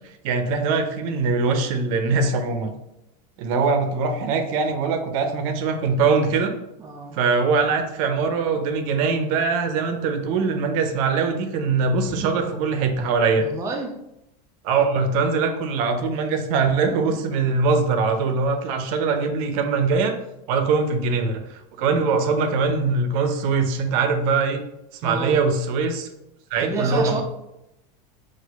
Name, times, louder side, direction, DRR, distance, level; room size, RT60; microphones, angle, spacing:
voice 1, 0.2-2.7 3.4-6.5 7.1-13.5 14.6-20.1 20.5-24.6 25.0-26.1 26.5-27.2, right 4 dB, 60° right, 6 dB, 0.6 m, -22 dB
voice 2, 6.8-7.2 12.1-12.4 13.4-13.9 25.0-25.4 26.6-27.2, right 3 dB, 15° right, 0 dB, 0.4 m, -30 dB
4.2 x 2.5 x 2.3 m, 0.86 s
supercardioid pair, 125°, 20 cm